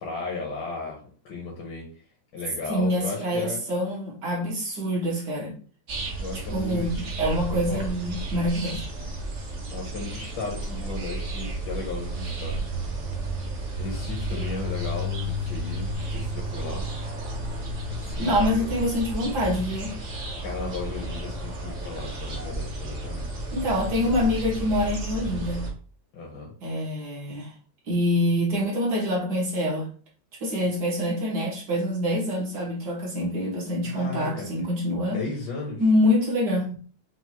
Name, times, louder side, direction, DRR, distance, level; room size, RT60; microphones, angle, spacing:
voice 1, 0.0-1.9 2.3-3.6 6.2-7.0 7.5-7.9 9.7-12.9 13.8-16.9 17.9-18.7 20.4-23.3 26.1-26.5 33.8-34.5 35.1-35.8, left 3 dB, 75° left, -2 dB, 1.7 m, -35 dB
voice 2, 2.7-5.6 6.3-8.8 18.2-19.9 23.5-25.7 26.6-27.5 27.9-29.9 30.4-35.2 35.8-36.8, left 1 dB, 65° right, -4 dB, 2.1 m, -25 dB
sound 1, 5.9-25.7, right 1 dB, 50° right, 1.2 m, -32 dB
5.8 x 2.6 x 2.9 m, 0.42 s
omnidirectional pair, 2.0 m